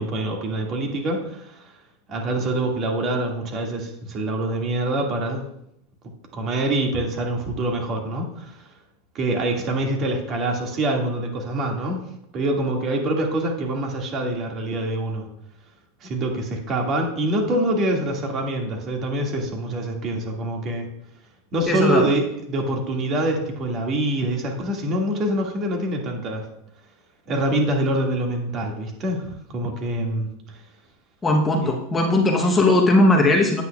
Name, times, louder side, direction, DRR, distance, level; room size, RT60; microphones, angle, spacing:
voice 1, 0.0-1.7 2.1-5.4 6.3-8.7 9.1-12.0 12.3-15.3 16.0-20.9 21.5-26.5 27.3-30.6 31.6-31.7, right 1 dB, 40° right, 1 dB, 1.9 m, -25 dB
voice 2, 21.7-22.1 31.2-33.6, left 2 dB, 20° left, 1 dB, 0.9 m, -18 dB
9.1 x 8.5 x 2.3 m, 0.76 s
hypercardioid pair, 115°, 0 cm